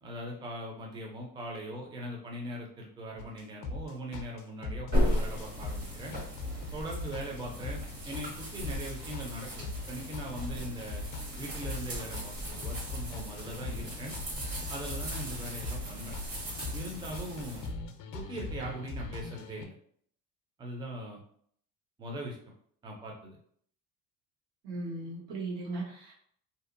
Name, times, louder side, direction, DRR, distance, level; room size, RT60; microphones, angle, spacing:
voice 1, 0.0-6.1 6.7-11.0 11.4-14.1 14.7-16.1 16.7-17.6 18.1-19.8 20.6-21.2 22.0-22.4 22.8-23.4, right 1 dB, 10° right, -1 dB, 0.4 m, -40 dB
sound 1, 3.2-19.7, left 2 dB, 55° left, 0.5 m, -40 dB
sound 2, 4.9-17.7, equal, 55° right, 1.3 m, -36 dB
voice 2, 24.6-26.1, right 2 dB, 80° right, -3 dB, 1.2 m, -37 dB
2.6 x 2.0 x 2.5 m, 0.62 s
cardioid pair, 120°, 38 cm